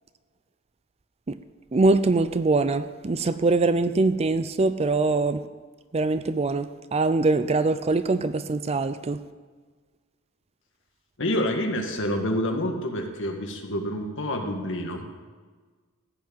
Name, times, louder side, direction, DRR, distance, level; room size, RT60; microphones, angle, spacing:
voice 1, 1.7-5.4 5.9-9.2, right 3 dB, 30° right, 12 dB, 0.4 m, -23 dB
voice 2, 11.2-15.1, left 1 dB, 60° left, 3 dB, 1.7 m, -28 dB
15.0 x 6.0 x 8.7 m, 1.5 s
head